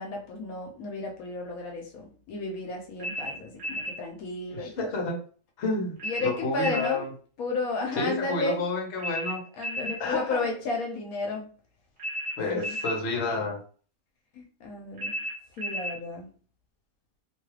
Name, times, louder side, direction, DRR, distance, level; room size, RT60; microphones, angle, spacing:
voice 1, 0.0-4.9 6.0-7.0 7.4-8.6 9.6-11.5 12.5-12.8 14.4-15.1 15.6-16.3, left 2 dB, 75° left, 1 dB, 1.1 m, -33 dB
sound 1, 3.0-4.0 6.0-7.0 9.0-10.0 12.0-13.0 15.0-16.0, equal, 50° right, 1.5 m, -33 dB
voice 2, 4.5-5.2 5.6-7.1 7.9-9.4 9.8-10.5 12.4-13.6, left 3 dB, 55° left, 1 dB, 1.0 m, -30 dB
2.9 x 2.3 x 3.2 m, 0.42 s
omnidirectional pair, 1.5 m